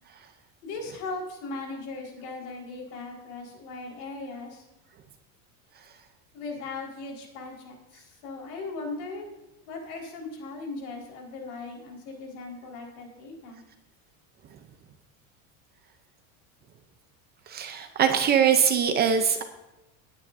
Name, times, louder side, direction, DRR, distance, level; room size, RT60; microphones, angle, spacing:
voice 1, 0.6-4.7 6.3-9.3 9.7-13.6, left 3 dB, 75° left, 0 dB, 4.7 m, -38 dB
voice 2, 17.5-19.4, right 7 dB, 20° right, 7 dB, 0.6 m, -22 dB
18.0 x 9.9 x 2.7 m, 1.0 s
cardioid pair, 175°, 43 cm